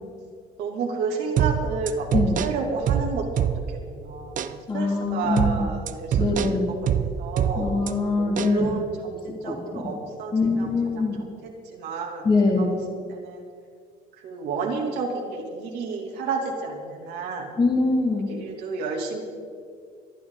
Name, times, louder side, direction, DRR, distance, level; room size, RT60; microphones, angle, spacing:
voice 1, 0.6-6.4 7.2-7.7 8.2-11.1 11.4-12.3 12.6-12.7 13.1-13.4 14.2-17.6 18.3-19.2, right 4 dB, 80° right, 0 dB, 2.9 m, -31 dB
sound 1, 1.4-3.9 4.4-4.6 5.4-7.9 8.4-8.6, right 9 dB, 50° right, 0.8 m, -25 dB
voice 2, 4.7-5.7 6.2-6.7 7.6-8.7 9.4-9.9 10.3-11.2 12.2-12.7 17.6-18.3, left 3 dB, 30° left, -1 dB, 2.7 m, -23 dB
26.5 x 9.7 x 4.1 m, 2.1 s
cardioid pair, 110°, 17 cm